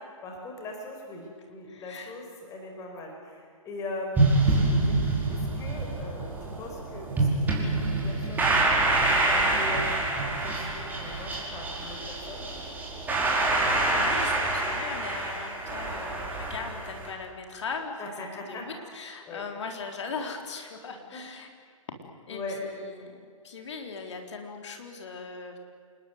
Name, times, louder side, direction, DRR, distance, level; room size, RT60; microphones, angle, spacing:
voice 1, 0.2-8.5 9.3-9.8 10.2-12.5 18.0-18.7 19.2-19.4 21.1-21.2 22.3-22.6, left 2 dB, 20° left, 1 dB, 5.1 m, -40 dB
voice 2, 1.7-2.2 13.4-18.1 18.5-21.5 22.3-25.6, left 4 dB, 55° left, 4 dB, 4.0 m, -39 dB
sound 1, 4.2-17.1, right 2 dB, 10° right, 5.1 m, -26 dB
28.0 x 20.5 x 9.5 m, 2.2 s
figure-of-eight pair, 125°, 18 cm